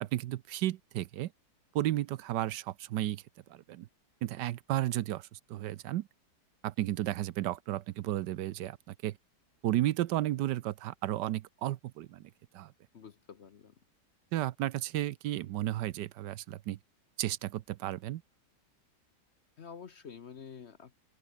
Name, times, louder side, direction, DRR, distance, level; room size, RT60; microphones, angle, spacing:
voice 1, 0.0-1.3 1.7-3.2 3.5-3.9 4.2-6.1 6.6-9.2 9.6-12.7 14.3-16.8 17.2-18.2, right 14 dB, 80° right, 1.3 m, -33 dB
voice 2, 12.9-13.7 19.6-20.9, left 6 dB, 50° left, 1.0 m, -48 dB
open air
omnidirectional pair, 1.9 m